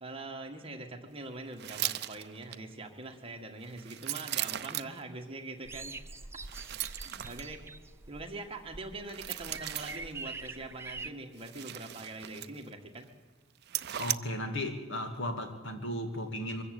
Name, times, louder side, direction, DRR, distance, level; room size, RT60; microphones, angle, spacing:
voice 1, 0.0-6.0 6.8-7.7 8.1-13.1, right 2 dB, 30° right, 4 dB, 1.9 m, -43 dB
sound 1, 1.6-2.6 3.6-5.0 6.4-7.5 9.1-10.1 11.4-12.7 13.0-13.1 13.6-14.2, right 14 dB, 55° right, 0.6 m, -37 dB
sound 2, 5.6-11.1, right 3 dB, 15° right, 0.6 m, -45 dB
voice 2, 14.0-16.6, left 1 dB, 65° left, 6 dB, 2.5 m, -35 dB
23.0 x 14.0 x 8.5 m, 1.4 s
head